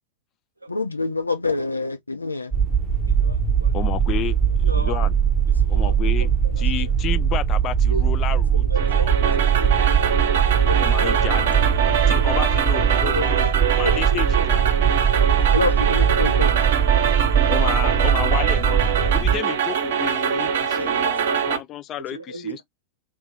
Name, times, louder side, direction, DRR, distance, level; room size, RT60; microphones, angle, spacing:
voice 1, 0.7-2.5 15.5-16.6, left 3 dB, 80° left, 0.7 m, -26 dB
sound 1, 2.5-19.4, right 7 dB, ahead, 0.9 m, -20 dB
voice 2, 3.1-3.8 4.6-5.1 5.5-6.9 7.9-8.0 8.5-10.0 10.6-11.2 11.8-12.3 13.0-15.9 17.6-17.8 20.6-21.4 22.1-22.6, right 1 dB, 85° right, 0.6 m, -34 dB
voice 3, 3.7-5.1 5.7-6.3 6.6-8.6 9.0-9.1 10.8-11.8 12.1-14.6 17.5-22.6, left 11 dB, 35° left, 0.4 m, -31 dB
sound 2, 8.8-21.6, right 8 dB, 55° right, 0.8 m, -23 dB
3.0 x 2.9 x 3.2 m
figure-of-eight pair, 90°, 0 cm